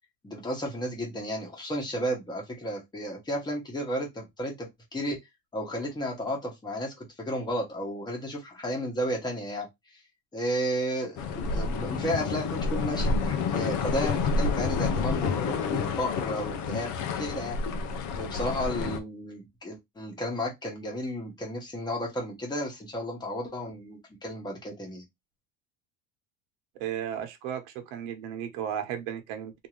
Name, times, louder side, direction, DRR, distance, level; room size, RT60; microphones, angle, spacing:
voice 1, 0.2-5.2 5.5-10.0 10.3-17.6 18.2-25.0, equal, 10° left, 1.1 m, -33 dB
sound 1, 11.2-19.0, left 4 dB, 45° left, 0.6 m, -29 dB
voice 2, 26.8-29.5, right 9 dB, 75° right, 1.2 m, -34 dB
3.6 x 2.7 x 3.1 m
cardioid pair, 170°, 43 cm